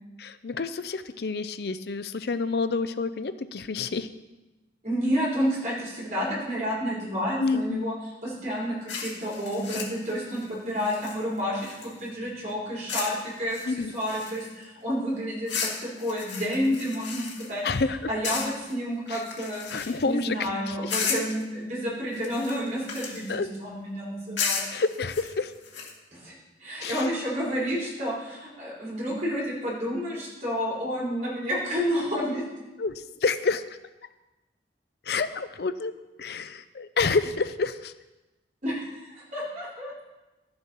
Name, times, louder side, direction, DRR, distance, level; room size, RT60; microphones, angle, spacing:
voice 1, 0.2-4.1 7.4-7.8 13.7-13.9 17.6-18.1 19.1-19.2 19.7-20.9 23.3-23.5 24.7-25.5 26.8-27.0 32.8-33.6 35.1-35.9 36.2-37.9, left 4 dB, 60° left, 12 dB, 0.5 m, -28 dB
voice 2, 4.8-7.9 8.2-24.7 26.1-32.4 38.6-39.9, equal, 40° right, -7 dB, 4.9 m, -30 dB
sound 1, 8.9-12.1 12.9-13.2 13.5-14.6 15.5-17.8 18.2-18.7 19.1-20.2 20.9-21.4 22.1-23.3 24.4-25.9, left 6 dB, 85° left, 2.2 m, -34 dB
12.5 x 7.8 x 5.7 m, 1.1 s
head